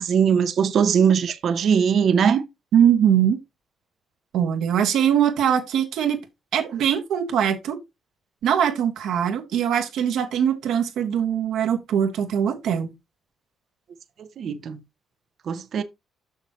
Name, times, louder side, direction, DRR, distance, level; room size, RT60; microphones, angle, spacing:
voice 1, 0.0-2.4 14.2-14.8 15.5-15.8, right 7 dB, 60° right, 0.9 m, -20 dB
voice 2, 2.7-3.4 4.3-6.2 6.5-7.8 8.4-12.9, right 9 dB, 80° right, 1.6 m, -21 dB
7.1 x 6.5 x 3.1 m
cardioid pair, 90°, 0 cm